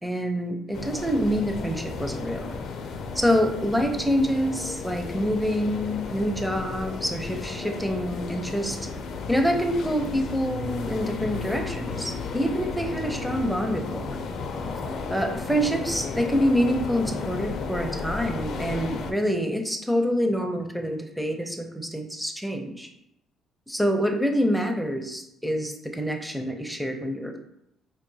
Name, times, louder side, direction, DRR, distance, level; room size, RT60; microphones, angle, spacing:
voice 1, 0.0-2.6 3.1-8.8 9.3-14.0 15.1-22.9 23.7-27.4, equal, ahead, 4 dB, 0.5 m, -26 dB
sound 1, 0.7-19.1, left 4 dB, 65° left, 0.4 m, -33 dB
4.6 x 2.5 x 2.7 m, 0.80 s
cardioid pair, 110°, 0 cm